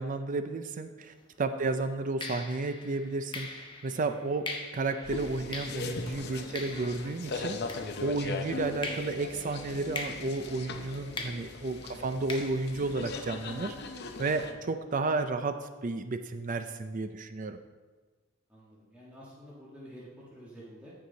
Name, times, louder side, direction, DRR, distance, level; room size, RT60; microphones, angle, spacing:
voice 1, 0.0-4.5 4.7-7.6 8.0-13.7 14.2-17.6, right 3 dB, 40° right, 9 dB, 0.4 m, -32 dB
sound 1, 1.0-1.3 2.2-8.4 8.8-13.5, left 3 dB, 25° left, 0.9 m, -43 dB
sound 2, 5.0-14.5, left 3 dB, 55° left, 0.7 m, -39 dB
voice 2, 18.5-20.9, equal, 5° right, -8 dB, 1.5 m, -50 dB
14.0 x 4.8 x 3.9 m, 1.3 s
head